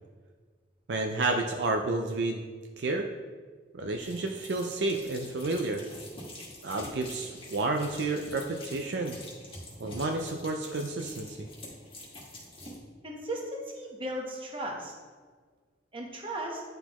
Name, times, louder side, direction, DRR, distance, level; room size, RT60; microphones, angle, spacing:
voice 1, 0.9-2.4 2.8-3.1 3.7-5.8 6.6-9.2 9.8-11.5, right 2 dB, 70° right, 3 dB, 0.4 m, -30 dB
sound 1, 4.0-12.8, left 1 dB, 30° left, 1.5 m, -46 dB
voice 2, 13.0-14.9 15.9-16.6, right 1 dB, 30° right, 0 dB, 1.0 m, -36 dB
10.0 x 3.9 x 3.0 m, 1.5 s
head